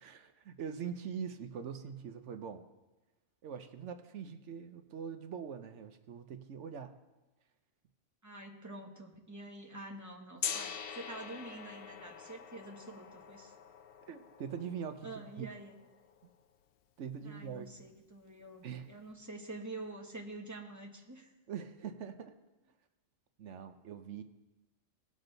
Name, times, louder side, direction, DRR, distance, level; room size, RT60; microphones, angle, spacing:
voice 1, 0.0-2.6 3.4-7.0 14.1-15.5 17.0-17.7 18.6-18.9 21.5-22.3 23.4-24.2, right 7 dB, 75° right, 9 dB, 1.0 m, -43 dB
voice 2, 8.2-13.5 15.0-15.7 17.2-21.3, right 2 dB, 15° right, 1 dB, 1.1 m, -47 dB
Gong, 10.4-16.3, left 8 dB, 60° left, 0.7 m, -44 dB
18.0 x 6.3 x 3.9 m, 1.1 s
omnidirectional pair, 1.3 m